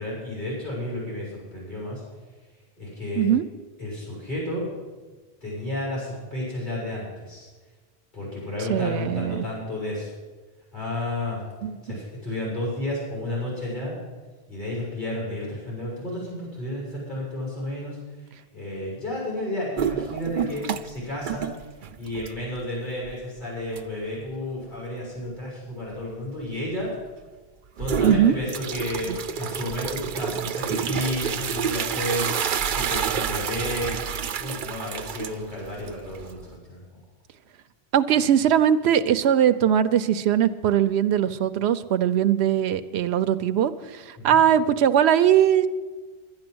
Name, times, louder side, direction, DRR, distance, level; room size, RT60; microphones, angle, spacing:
voice 1, 0.0-2.0 2.8-3.3 3.8-4.7 5.4-7.5 8.1-10.1 10.7-11.4 11.8-13.9 14.5-18.0 18.5-21.5 22.0-26.9 27.8-34.0 34.4-36.8 44.2-44.4, left 1 dB, 45° left, -5 dB, 6.3 m, -32 dB
voice 2, 8.7-9.5 11.6-11.7 28.0-28.3 37.9-45.7, right 9 dB, 80° right, 10 dB, 0.9 m, -20 dB
sound 1, 19.8-21.0 21.3-22.6 23.0-23.1 23.8-23.9 27.8-36.6, right 8 dB, 55° right, 0.7 m, -29 dB
11.5 x 10.5 x 7.8 m, 1.3 s
omnidirectional pair, 1.1 m